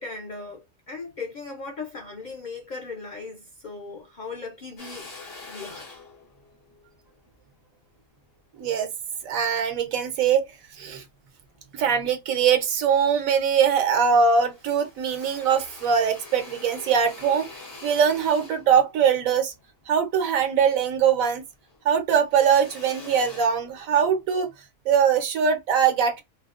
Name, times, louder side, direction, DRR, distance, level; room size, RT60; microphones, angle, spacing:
voice 1, 0.0-5.1 5.5-5.9, left 4 dB, 60° left, 0.4 m, -38 dB
Drill, 4.8-9.3 9.9-11.0 11.5-12.4 12.8-12.9 13.2-14.2 14.4-21.1 21.4-24.2, left 3 dB, 85° left, 1.5 m, -46 dB
voice 2, 8.6-8.9 9.2-10.4 10.8-11.0 11.7-19.5 19.9-21.4 21.8-24.5 24.8-26.2, right 7 dB, 85° right, 1.2 m, -22 dB
4.2 x 2.0 x 2.4 m
omnidirectional pair, 1.4 m